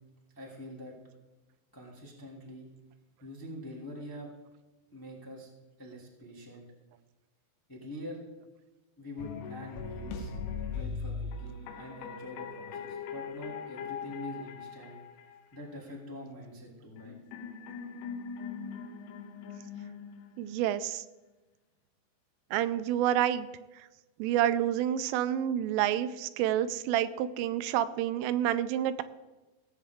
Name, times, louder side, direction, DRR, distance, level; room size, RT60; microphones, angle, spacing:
voice 1, 0.3-0.9 1.7-2.7 3.2-4.3 4.9-5.5 5.8-6.6 7.7-8.2 9.0-10.3 10.7-15.0 15.5-17.2, left 1 dB, 10° left, -4 dB, 1.2 m, -44 dB
sound 1, 9.2-15.6 17.0-20.6, left 5 dB, 80° left, 3.3 m, -40 dB
voice 2, 20.4-21.0 22.5-23.5 24.2-29.0, right 11 dB, 85° right, 13 dB, 3.1 m, -28 dB
17.5 x 8.0 x 3.6 m, 1.1 s
omnidirectional pair, 5.6 m